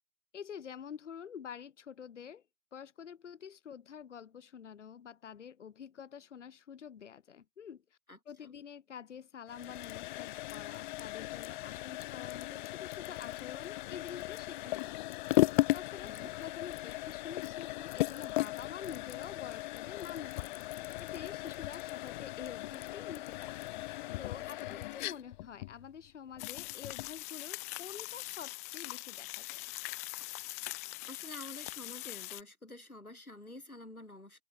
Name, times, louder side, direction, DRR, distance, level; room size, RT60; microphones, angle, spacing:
voice 1, 0.3-2.4 2.7-8.0 8.3-15.0 15.7-23.8 24.2-29.6, left 8 dB, 55° left, 2.3 m, -47 dB
voice 2, 8.1-8.5 16.0-16.3 24.3-25.1 30.6-34.4, left 1 dB, 90° left, 3.1 m, -50 dB
sound 1, 9.5-27.2, left 18 dB, 35° left, 3.1 m, -37 dB
sound 2, 26.4-32.4, left 23 dB, 10° left, 0.5 m, -42 dB
open air
figure-of-eight pair, 120°, 42 cm